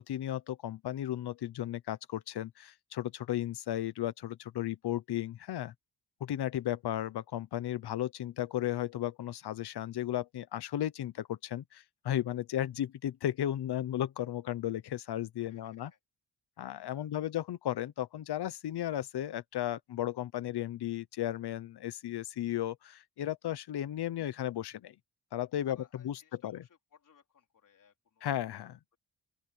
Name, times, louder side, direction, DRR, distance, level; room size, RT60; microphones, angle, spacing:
voice 1, 0.0-5.7 6.2-15.9 16.6-24.9 25.3-25.8 26.0-26.6 28.2-28.8, left 12 dB, 85° left, 1.0 m, -35 dB
voice 2, 15.4-16.0 16.5-16.6 16.9-17.3 25.6-28.5, left 7 dB, 55° left, 4.4 m, -63 dB
open air
wide cardioid pair, 170°, 39 cm